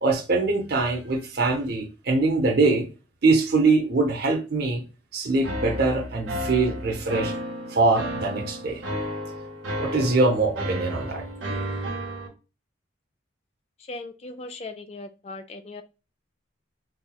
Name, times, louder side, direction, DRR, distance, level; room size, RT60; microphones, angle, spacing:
voice 1, 0.0-2.9 3.2-4.8 5.1-7.3 7.7-8.8 9.8-11.2, right 3 dB, 50° right, 0.7 m, -23 dB
sound 1, 5.4-12.3, equal, 80° right, 1.0 m, -32 dB
voice 2, 13.8-15.8, left 2 dB, 30° left, 0.3 m, -38 dB
4.2 x 2.2 x 2.2 m
head